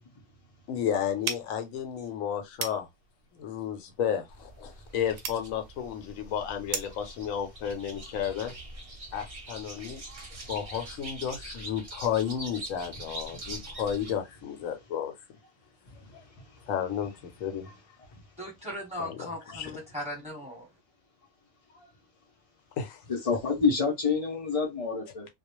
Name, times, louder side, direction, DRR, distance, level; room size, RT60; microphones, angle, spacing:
voice 1, 0.7-2.9 3.3-8.5 9.1-10.0 10.5-15.1 16.7-17.1 17.4-17.7 19.0-19.8 22.8-23.0, left 8 dB, 75° left, 1.0 m, -32 dB
sound 1, 1.2-7.1, right 6 dB, 80° right, 1.0 m, -40 dB
sound 2, 4.3-14.2, right 1 dB, 45° right, 0.5 m, -44 dB
voice 2, 18.4-20.6, left 1 dB, 5° right, 1.0 m, -38 dB
voice 3, 23.1-25.3, left 5 dB, 50° left, 0.4 m, -27 dB
2.3 x 2.1 x 2.9 m
omnidirectional pair, 1.4 m